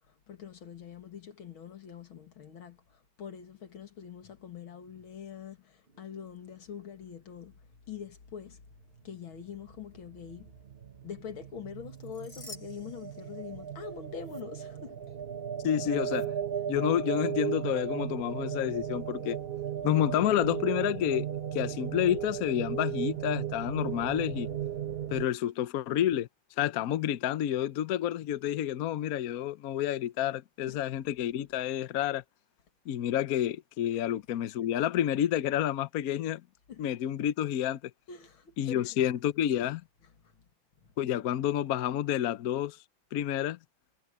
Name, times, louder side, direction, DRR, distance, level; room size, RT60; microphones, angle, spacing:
voice 1, 0.3-7.5 7.9-8.6 9.0-10.5 11.0-15.2 30.7-30.8 33.9-34.0 36.7-36.8 38.1-39.0 40.8-40.9, left 8 dB, 90° left, 2.9 m, -44 dB
sound 1, 8.8-25.3, right 10 dB, 35° right, 1.1 m, -36 dB
sound 2, 11.8-13.8 14.2-14.4 16.0-16.3, left 1 dB, 30° left, 7.4 m, -51 dB
voice 2, 15.6-16.3 16.7-19.4 19.8-21.3 21.5-24.5 25.1-26.3 26.6-32.2 32.9-36.4 36.8-37.8 38.6-39.8 41.0-42.8 43.1-43.6, left 11 dB, 60° left, 0.9 m, -29 dB
omnidirectional pair, 2.2 m